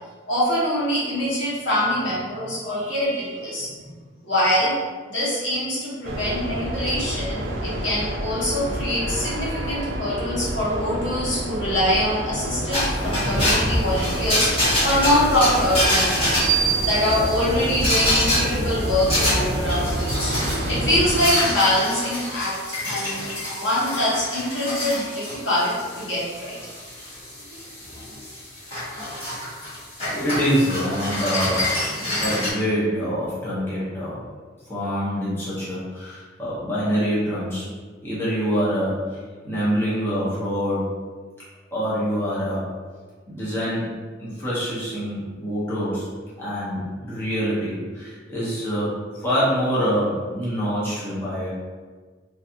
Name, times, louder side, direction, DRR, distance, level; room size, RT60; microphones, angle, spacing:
voice 1, 0.3-3.7 4.2-4.7 5.1-16.5 16.9-20.3 20.7-22.6 22.8-26.6, left 1 dB, 75° left, -8 dB, 1.1 m, -24 dB
sound 1, 6.0-21.3, right 2 dB, 80° right, 0.5 m, -27 dB
sound 2, 12.7-32.5, left 1 dB, 30° left, 1.3 m, -26 dB
voice 2, 30.1-31.7 32.0-34.2 34.7-37.7 38.0-39.2 39.4-40.9 41.7-42.7 43.3-43.9 44.2-46.1 46.4-51.5, equal, 10° left, -10 dB, 0.9 m, -25 dB
3.1 x 2.6 x 2.7 m, 1.5 s
head